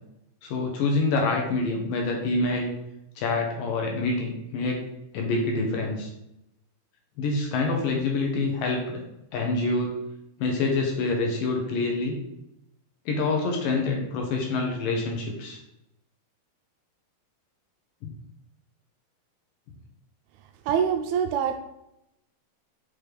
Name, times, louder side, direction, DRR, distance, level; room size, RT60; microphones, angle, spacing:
voice 1, 0.4-2.7 3.2-4.8 5.1-6.1 7.2-9.0 9.3-10.0 10.4-12.2 13.1-15.6 18.0-18.1, left 3 dB, 70° left, 1 dB, 2.4 m, -26 dB
voice 2, 20.7-21.6, right 8 dB, 80° right, 6 dB, 2.3 m, -24 dB
6.3 x 5.3 x 3.4 m, 0.84 s
omnidirectional pair, 4.5 m